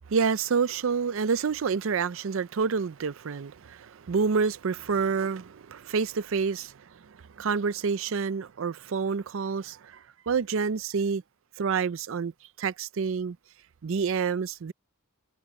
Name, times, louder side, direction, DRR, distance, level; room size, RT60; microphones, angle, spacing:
voice 1, 0.1-11.2 11.6-12.3 12.6-13.4 13.8-14.7, right 5 dB, 65° right, 0.5 m, -28 dB
head